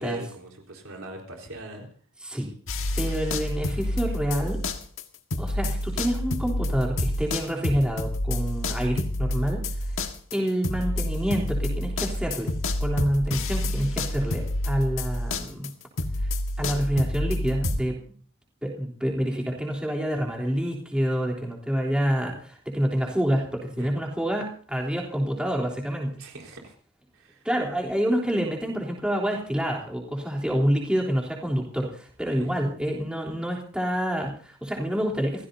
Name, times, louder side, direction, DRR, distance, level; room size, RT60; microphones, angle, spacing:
voice 1, 0.0-1.9 2.8-3.2 23.8-24.0 26.2-26.7 27.1-27.4 32.4-32.5, equal, 70° right, 1 dB, 4.2 m, -41 dB
sound 1, 2.7-5.0 5.3-17.8, left 1 dB, 65° left, 1.7 m, -28 dB
voice 2, 3.0-4.6 5.4-9.7 10.3-12.5 12.8-15.7 16.2-16.3 16.6-18.0 18.6-26.2 27.4-35.5, equal, 5° right, -1 dB, 3.5 m, -27 dB
28.5 x 16.0 x 2.8 m, 0.43 s
head